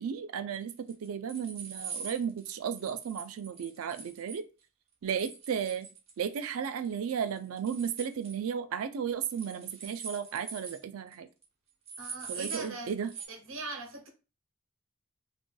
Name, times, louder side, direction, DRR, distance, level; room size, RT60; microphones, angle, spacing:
voice 1, 0.0-4.5 5.0-5.9 6.2-11.3 12.3-13.1, right 7 dB, 90° right, 0.4 m, -34 dB
sound 1, 0.7-4.4 5.2-6.4 6.6-7.0 7.3-8.4 9.3-10.8 11.1-11.2 11.4-11.5 11.9-12.7 13.1-13.3, right 6 dB, 30° right, 0.9 m, -43 dB
voice 2, 12.0-12.9 13.3-14.1, right 2 dB, 65° right, 0.8 m, -40 dB
3.8 x 2.4 x 2.2 m
head